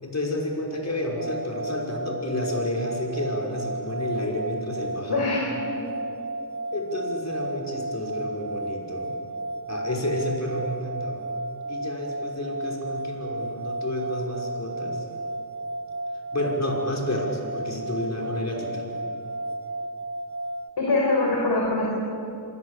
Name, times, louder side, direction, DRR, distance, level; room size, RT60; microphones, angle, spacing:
voice 1, 0.0-5.3 6.7-9.2 9.7-11.2 11.7-15.1 16.3-18.8, left 1 dB, 35° left, 0 dB, 5.9 m, -30 dB
sound 1, 1.1-20.7, right 2 dB, 30° right, 1.3 m, -33 dB
voice 2, 5.1-5.9 20.8-21.9, left 2 dB, 55° left, -2 dB, 6.1 m, -24 dB
25.5 x 24.0 x 8.4 m, 2.7 s
cardioid pair, 80°, 44 cm